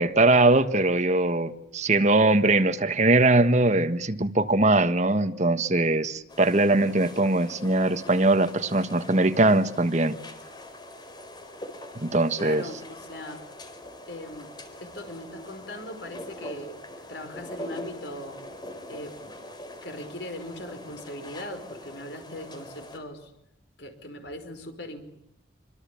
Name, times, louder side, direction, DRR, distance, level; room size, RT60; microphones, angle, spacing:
voice 1, 0.0-10.2 12.0-12.6, right 2 dB, 40° right, 1.5 m, -21 dB
sound 1, 6.3-23.0, left 1 dB, 25° left, 4.2 m, -43 dB
voice 2, 12.4-13.4 14.1-14.5 14.8-16.8 17.1-18.4 18.9-19.4 19.8-23.3 23.8-25.1, left 1 dB, 60° left, 5.2 m, -39 dB
26.0 x 25.5 x 8.6 m
head